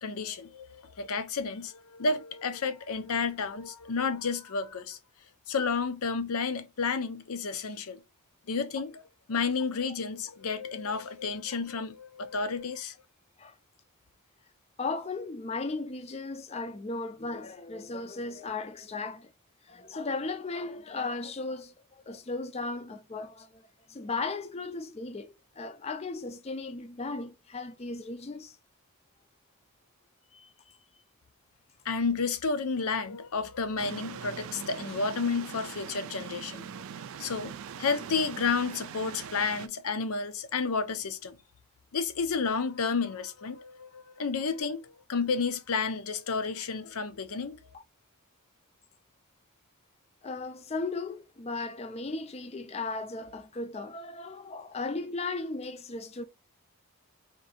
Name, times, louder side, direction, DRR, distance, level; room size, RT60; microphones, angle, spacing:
voice 1, 0.0-5.0 5.5-8.0 8.5-9.0 9.3-12.9 31.8-41.4 41.9-47.6, left 4 dB, 80° left, 0.6 m, -31 dB
voice 2, 14.8-19.3 19.7-28.6 30.3-30.5 47.7-47.8 50.2-56.2, left 3 dB, 30° left, 0.4 m, -36 dB
sound 1, 33.8-39.7, right 8 dB, 70° right, 0.3 m, -42 dB
3.6 x 2.6 x 4.2 m
head